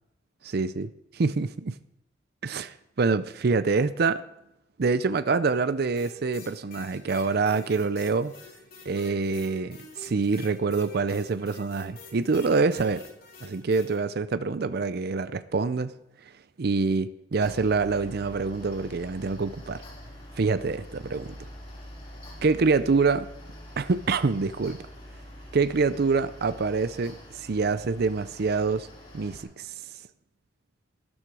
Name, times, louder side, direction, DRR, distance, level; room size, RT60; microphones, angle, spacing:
voice 1, 0.4-0.9 1.2-1.7 2.4-4.2 4.8-8.3 8.9-13.0 13.4-15.9 16.6-19.8 20.4-21.3 22.4-23.3 23.8-24.8 25.5-28.9 29.1-29.7, right 4 dB, 60° right, 13 dB, 0.5 m, -26 dB
sound 1, 6.0-14.0, left 3 dB, 55° left, 3.7 m, -48 dB
Mechanical fan, 17.4-29.4, equal, 30° left, 3.9 m, -45 dB
12.5 x 12.0 x 4.8 m, 0.87 s
head